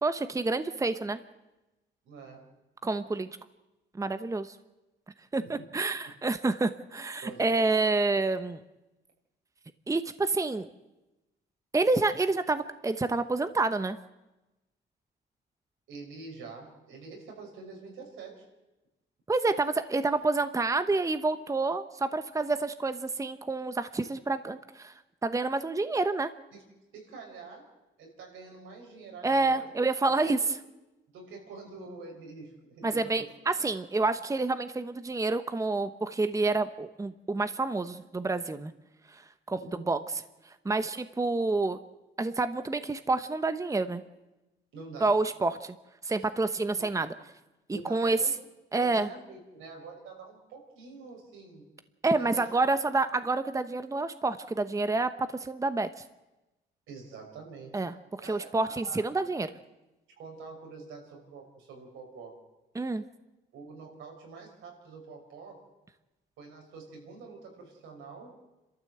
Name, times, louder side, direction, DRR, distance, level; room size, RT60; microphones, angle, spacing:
voice 1, 0.0-1.2 2.8-3.3 3.9-4.6 5.3-8.6 9.9-10.7 11.7-14.0 19.3-24.9 25.2-26.3 29.2-30.6 32.8-38.7 39.1-40.0 40.6-41.8 42.2-44.0 45.0-45.8 46.0-47.1 47.7-48.2 48.7-49.1 52.0-56.0 57.7-59.5 62.7-63.0, right 3 dB, 15° right, 10 dB, 1.0 m, -28 dB
voice 2, 2.0-2.4 5.4-5.6 7.2-7.6 15.9-18.5 26.5-26.6 26.9-27.7 28.0-29.7 30.0-30.1 30.4-30.5 31.1-33.3 39.6-39.9 44.7-45.2 46.8-47.0 47.7-48.3 48.7-51.6 52.1-52.4 56.9-57.8 58.2-59.1 60.2-62.3 63.5-65.6 66.4-68.4, right 4 dB, 85° right, 1 dB, 6.0 m, -46 dB
28.5 x 13.0 x 7.9 m, 1.0 s
cardioid pair, 90°, 20 cm